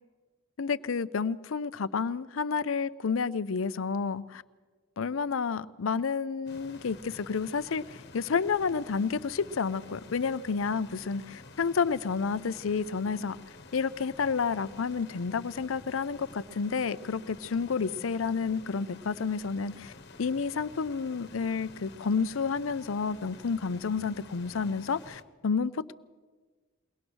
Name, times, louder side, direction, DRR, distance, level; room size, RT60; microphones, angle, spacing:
voice 1, 0.6-4.4 5.0-13.4 13.7-19.9 20.2-25.9, left 5 dB, 85° left, 16 dB, 0.6 m, -30 dB
sound 1, 6.5-25.2, left 3 dB, 55° left, 1.3 m, -50 dB
22.5 x 19.0 x 6.2 m, 1.4 s
head